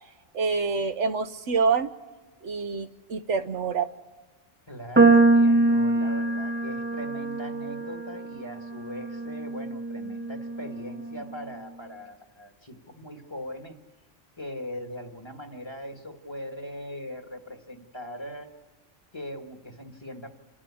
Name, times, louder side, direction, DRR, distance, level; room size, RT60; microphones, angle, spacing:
voice 1, 0.3-1.9 2.4-3.9, right 5 dB, 70° right, 9 dB, 1.1 m, -26 dB
voice 2, 4.7-13.8 14.4-18.5 19.1-20.3, equal, 20° left, 4 dB, 1.7 m, -40 dB
sound 1, 5.0-11.3, right 3 dB, 10° right, 0.9 m, -24 dB
28.5 x 12.5 x 8.4 m, 1.3 s
omnidirectional pair, 1.3 m